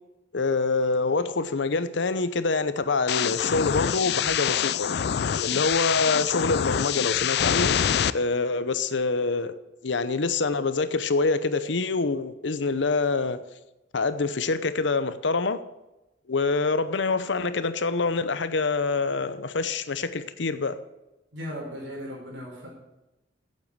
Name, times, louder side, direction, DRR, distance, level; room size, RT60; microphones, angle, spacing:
voice 1, 0.3-4.9 5.4-7.8 8.1-9.6 9.8-13.4 13.9-15.6 16.3-20.8, left 3 dB, 85° left, 0.8 m, -26 dB
sound 1, 3.1-8.1, left 9 dB, 60° left, 0.4 m, -25 dB
voice 2, 21.3-22.7, equal, 85° right, 5.0 m, -37 dB
8.5 x 8.1 x 8.7 m
head